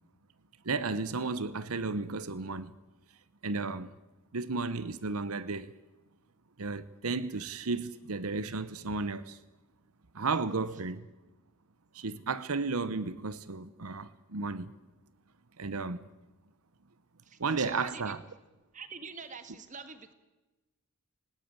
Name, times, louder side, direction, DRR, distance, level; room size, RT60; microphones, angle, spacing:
voice 1, 0.6-2.7 3.4-3.9 4.3-5.7 6.6-9.4 10.1-11.1 11.9-14.7 15.6-16.1 17.4-18.2, right 4 dB, 90° right, 0.9 m, -33 dB
voice 2, 17.3-18.2 18.7-20.1, right 5 dB, 35° right, 1.8 m, -44 dB
28.0 x 18.5 x 8.9 m
head